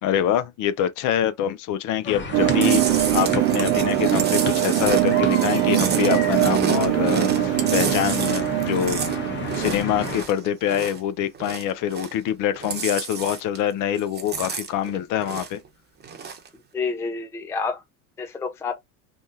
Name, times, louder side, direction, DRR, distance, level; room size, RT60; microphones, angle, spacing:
voice 1, 0.0-9.0 9.5-15.6, left 10 dB, 45° left, 0.6 m, -25 dB
sound 1, 2.0-10.2, left 3 dB, 25° left, 1.1 m, -32 dB
sound 2, 2.3-10.2, right 15 dB, 65° right, 0.6 m, -22 dB
Chewing mastication, 2.6-11.1 11.3-12.3 12.5-13.7 14.0-15.7 16.0-16.5, right 6 dB, 25° right, 0.9 m, -31 dB
voice 2, 16.7-17.8 18.2-18.7, left 4 dB, 5° left, 0.4 m, -28 dB
3.5 x 2.3 x 2.7 m
supercardioid pair, 100°, 44 cm